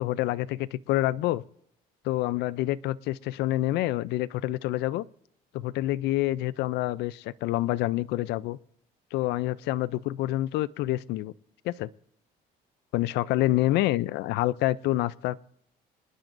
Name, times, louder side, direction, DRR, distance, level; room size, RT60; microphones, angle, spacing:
voice 1, 0.0-1.4 2.0-5.1 5.5-8.6 9.1-11.3 11.6-11.9 12.9-15.4, left 16 dB, 85° left, 17 dB, 0.4 m, -27 dB
26.5 x 10.5 x 2.6 m, 0.69 s
cardioid pair, 110°, 17 cm